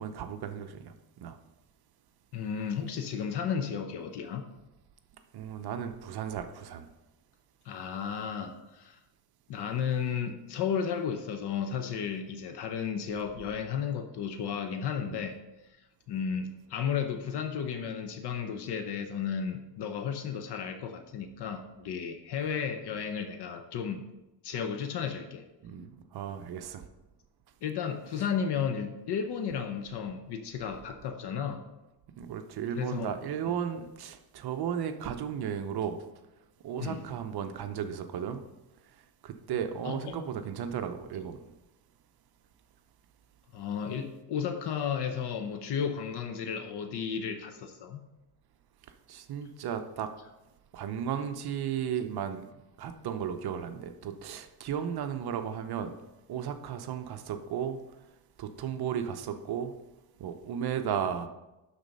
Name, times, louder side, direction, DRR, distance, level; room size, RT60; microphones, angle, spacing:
voice 1, 0.0-1.4 5.3-6.9 15.1-15.2 25.6-26.8 32.2-36.0 36.6-38.4 38.8-39.0 39.2-41.5 49.1-50.1 50.7-52.5 52.8-55.9 56.3-57.8 58.4-59.7 60.2-61.3, right 8 dB, 55° right, 0.8 m, -35 dB
voice 2, 2.3-4.4 7.6-9.0 9.5-15.4 15.7-15.8 16.1-24.0 24.4-25.4 27.6-31.6 32.8-33.1 36.8-37.0 39.8-40.1 43.5-48.0, left 7 dB, 60° left, 0.8 m, -33 dB
11.5 x 4.1 x 5.3 m
cardioid pair, 140°, 47 cm